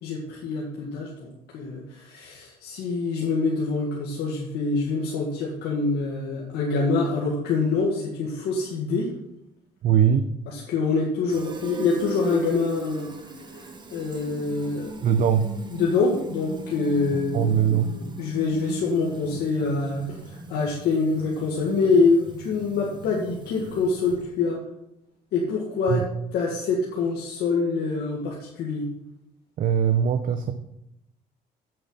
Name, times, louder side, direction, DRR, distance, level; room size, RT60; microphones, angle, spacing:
voice 1, 0.0-9.1 10.5-13.1 13.5-14.9 15.7-24.6 25.3-26.0 26.3-28.8, left 4 dB, 75° left, -3 dB, 1.9 m, -25 dB
voice 2, 9.8-10.3 15.0-15.5 17.3-17.9 25.9-26.0 29.6-30.5, right 8 dB, 55° right, 8 dB, 0.7 m, -21 dB
Fill (with liquid), 11.3-24.4, right 2 dB, 25° right, 1.3 m, -38 dB
8.0 x 7.7 x 5.6 m, 0.82 s
cardioid pair, 110°, 17 cm